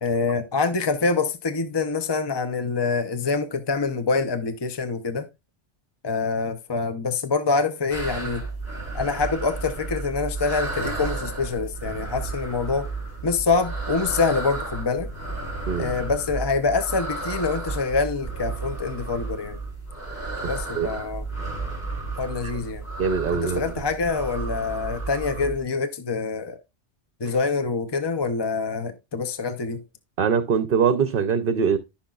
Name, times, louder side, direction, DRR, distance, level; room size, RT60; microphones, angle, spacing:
voice 1, 0.0-5.3 6.0-8.4 8.9-12.9 13.2-15.1 15.8-19.6 20.4-21.3 22.2-22.8 23.3-26.6 27.2-29.8, left 4 dB, 30° left, 0.5 m, -25 dB
sound 1, 7.9-25.6, right 3 dB, 60° left, 5.1 m, -33 dB
voice 2, 23.0-23.7 27.2-27.4 30.2-31.8, right 6 dB, 55° right, 0.8 m, -22 dB
14.0 x 5.9 x 2.3 m
omnidirectional pair, 1.2 m